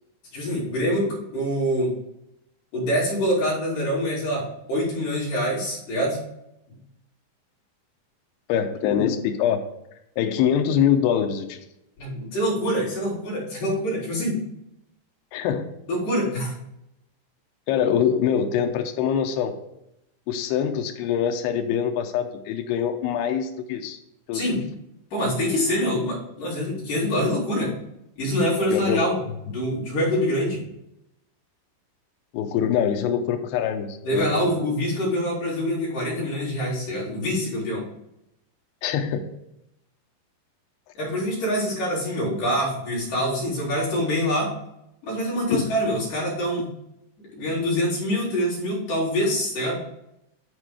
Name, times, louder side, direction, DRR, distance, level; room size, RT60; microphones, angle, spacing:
voice 1, 0.3-1.9 2.7-4.4 4.7-6.2 12.0-14.4 15.9-16.5 24.3-24.6 25.1-27.7 28.2-29.2 29.4-30.6 34.0-37.8 41.0-44.5 45.0-46.7 47.3-49.8, equal, 50° left, -5 dB, 4.0 m, -25 dB
voice 2, 8.5-9.6 10.2-11.6 15.3-15.7 17.7-19.6 20.3-24.0 24.3-24.6 28.7-29.0 32.3-34.5 38.8-39.3 45.5-45.7, left 8 dB, 80° left, 5 dB, 2.6 m, -24 dB
10.5 x 4.2 x 4.9 m, 0.82 s
omnidirectional pair, 5.2 m